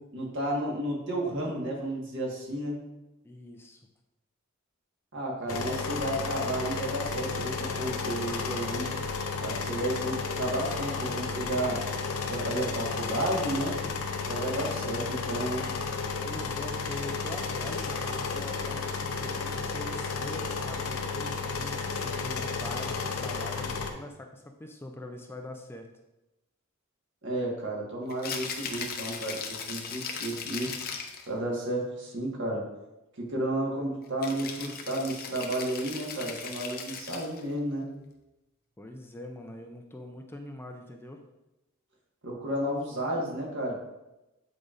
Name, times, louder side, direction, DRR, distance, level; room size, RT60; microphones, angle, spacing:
voice 1, 0.1-2.8 5.1-8.9 9.4-11.8 12.2-13.8 14.2-15.6 27.2-30.7 31.3-32.7 33.2-37.9 42.2-43.7, right 1 dB, 60° right, -2 dB, 1.5 m, -32 dB
voice 2, 3.2-3.8 16.2-25.9 38.8-41.2, left 1 dB, 10° left, 3 dB, 0.4 m, -43 dB
sound 1, 5.5-23.9, left 4 dB, 85° left, 0.7 m, -32 dB
Rattle (instrument), 28.1-31.3 34.2-37.4, left 5 dB, 45° left, 0.7 m, -38 dB
8.1 x 4.9 x 2.5 m, 0.96 s
head